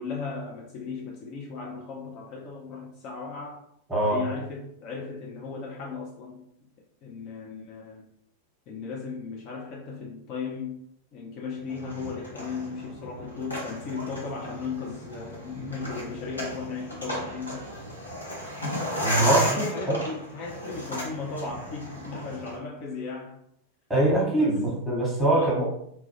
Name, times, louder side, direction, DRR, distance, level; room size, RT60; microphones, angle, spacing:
voice 1, 0.0-3.6 4.0-6.4 7.0-8.1 8.7-10.8 11.1-17.6 19.2-23.4 24.4-24.8 25.3-25.7, left 4 dB, 40° left, 0.4 m, -36 dB
sound 1, 11.7-22.6, equal, 80° left, 0.8 m, -34 dB
voice 2, 19.0-19.4 23.9-25.7, right 1 dB, 5° right, 1.0 m, -23 dB
2.2 x 2.0 x 3.0 m
figure-of-eight pair, 90°, 0 cm